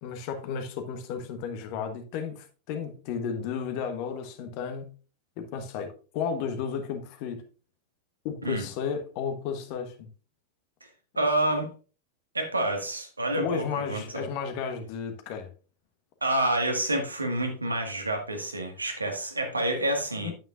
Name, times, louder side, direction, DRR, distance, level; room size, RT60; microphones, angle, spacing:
voice 1, 0.0-4.9 5.4-7.4 8.2-10.1 13.3-15.5 20.2-20.3, left 6 dB, 45° left, 1.3 m, -33 dB
voice 2, 11.1-11.7 12.3-14.2 16.2-20.3, right 1 dB, 80° right, 1.7 m, -28 dB
9.1 x 9.0 x 2.5 m
figure-of-eight pair, 90°, 0 cm